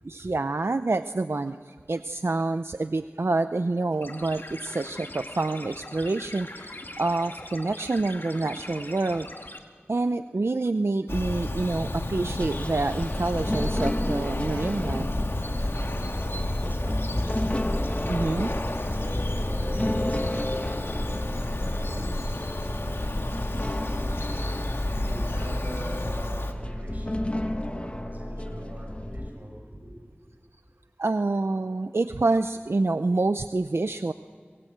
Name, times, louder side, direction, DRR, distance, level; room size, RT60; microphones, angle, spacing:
voice 1, 0.1-9.3 9.9-15.1 15.4-15.5 18.1-18.5 25.0-25.1 31.0-34.1, right 3 dB, 80° right, 0.6 m, -27 dB
sound 1, 4.0-9.6, left 1 dB, 55° left, 2.2 m, -41 dB
Bird vocalization bird call bird song, 11.1-26.5, left 1 dB, 70° left, 1.8 m, -31 dB
sound 2, 12.4-29.3, left 1 dB, 30° left, 1.1 m, -32 dB
voice 2, 15.5-29.9, right 1 dB, 40° right, 7.6 m, -43 dB
24.0 x 21.5 x 7.9 m
wide cardioid pair, 40°, 4 cm